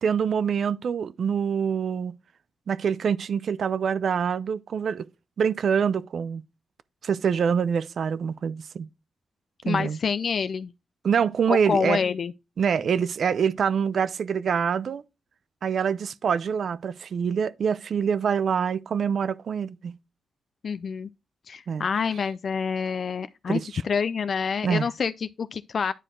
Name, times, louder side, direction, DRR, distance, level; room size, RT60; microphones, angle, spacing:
voice 1, 0.0-2.2 2.7-5.1 5.4-6.4 7.0-8.9 9.6-10.0 11.0-12.0 12.6-15.0 15.6-20.0 21.7-21.8 23.5-23.8 24.6-24.9, right 7 dB, 65° right, 0.5 m, -25 dB
voice 2, 9.6-10.7 11.5-12.3 20.6-21.1 21.5-25.9, left 6 dB, 60° left, 0.3 m, -27 dB
9.9 x 4.6 x 3.7 m
cardioid pair, 80°, 0 cm